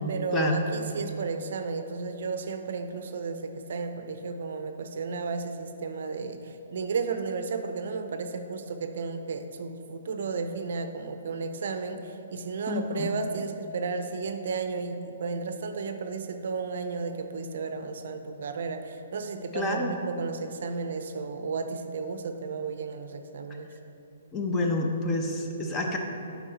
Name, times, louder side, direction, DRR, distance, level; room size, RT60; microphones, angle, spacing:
voice 1, 0.1-23.7, right 4 dB, 60° right, 7 dB, 0.5 m, -33 dB
voice 2, 12.7-13.1 19.5-19.9 24.3-26.0, left 2 dB, 20° left, 2 dB, 0.7 m, -28 dB
7.2 x 4.7 x 4.0 m, 3.0 s
hypercardioid pair, 130°, 0 cm